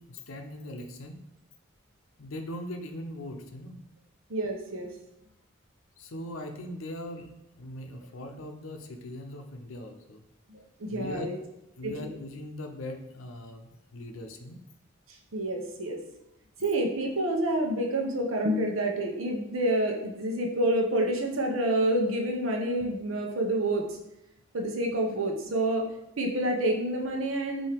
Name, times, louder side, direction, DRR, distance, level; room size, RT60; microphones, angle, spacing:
voice 1, 0.1-1.2 2.2-3.8 6.0-10.2 10.9-11.3 11.7-14.6, left 1 dB, 90° left, 5 dB, 0.6 m, -40 dB
voice 2, 4.3-4.9 10.5-11.4 11.8-12.1 15.3-16.0 16.6-23.9 24.5-25.9 26.2-27.7, right 1 dB, 90° right, 1 dB, 0.8 m, -28 dB
5.5 x 2.7 x 3.4 m, 0.87 s
head